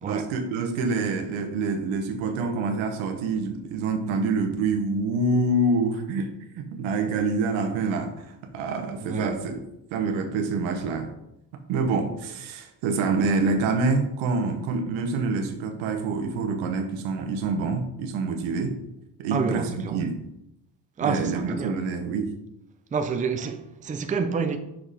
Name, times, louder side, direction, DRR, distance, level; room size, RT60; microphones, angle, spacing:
voice 1, 0.0-9.6 9.9-11.1 11.7-18.8 19.2-20.2 21.0-22.3, right 3 dB, 90° right, 1.2 m, -26 dB
voice 2, 9.0-9.3 19.3-20.0 21.0-21.8 22.9-24.6, right 5 dB, 15° right, 0.5 m, -28 dB
6.0 x 5.2 x 4.2 m
cardioid pair, 120°, 46 cm